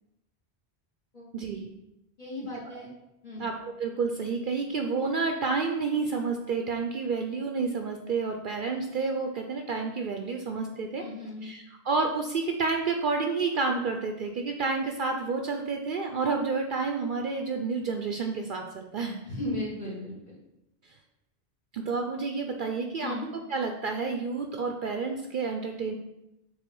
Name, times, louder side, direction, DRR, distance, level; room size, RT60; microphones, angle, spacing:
voice 1, 1.3-1.7 3.4-11.0 11.4-19.2 21.7-23.2 23.5-25.9, right 4 dB, 60° right, 4 dB, 0.7 m, -30 dB
voice 2, 2.2-2.9 3.2-3.4 11.0-11.5 19.2-20.3 23.0-23.3, left 1 dB, 45° left, -7 dB, 1.7 m, -36 dB
6.4 x 3.6 x 5.3 m, 0.89 s
omnidirectional pair, 1.1 m